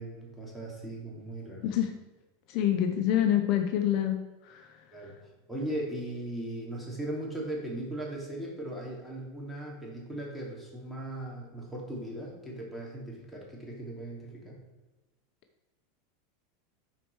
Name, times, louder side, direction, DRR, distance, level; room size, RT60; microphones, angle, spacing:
voice 1, 0.0-1.8 4.9-5.1 5.5-14.6, right 1 dB, ahead, -4 dB, 2.7 m, -38 dB
voice 2, 2.5-4.2 4.5-4.6, left 10 dB, 55° left, 6 dB, 0.8 m, -26 dB
11.0 x 4.6 x 4.7 m, 1.2 s
supercardioid pair, 125°, 0 cm